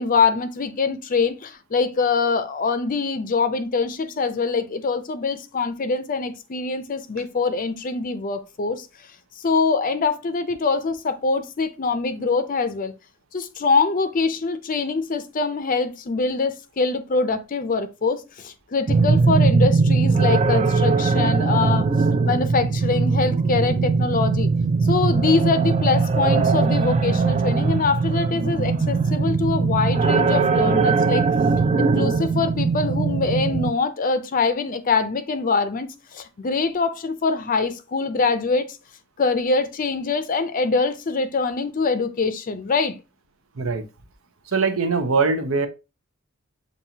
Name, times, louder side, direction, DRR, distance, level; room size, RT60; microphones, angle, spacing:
voice 1, 0.0-8.9 9.4-12.9 13.3-21.9 22.2-24.5 24.8-31.3 31.8-38.8 39.2-43.0, left 4 dB, 40° left, 0.5 m, -24 dB
sound 1, 18.9-33.7, right 4 dB, 30° right, 0.3 m, -20 dB
voice 2, 44.5-45.7, right 4 dB, 85° right, 0.8 m, -22 dB
7.1 x 2.6 x 2.7 m
head